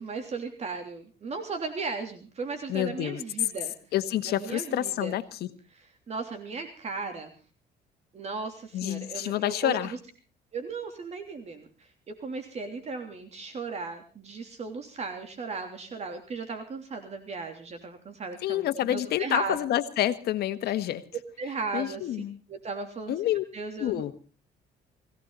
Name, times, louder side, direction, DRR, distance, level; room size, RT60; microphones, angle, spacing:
voice 1, 0.0-3.7 4.2-5.2 5.7-7.3 8.1-10.0 10.5-19.6 21.4-22.2 22.5-23.2 23.5-24.1, right 4 dB, 40° right, 6 dB, 3.3 m, -36 dB
voice 2, 2.7-3.2 3.9-5.5 8.7-9.9 18.4-21.0 21.7-22.4 23.1-23.4 23.8-24.1, left 12 dB, 70° left, 11 dB, 1.6 m, -28 dB
21.0 x 17.0 x 4.1 m, 0.36 s
cardioid pair, 110°, 17 cm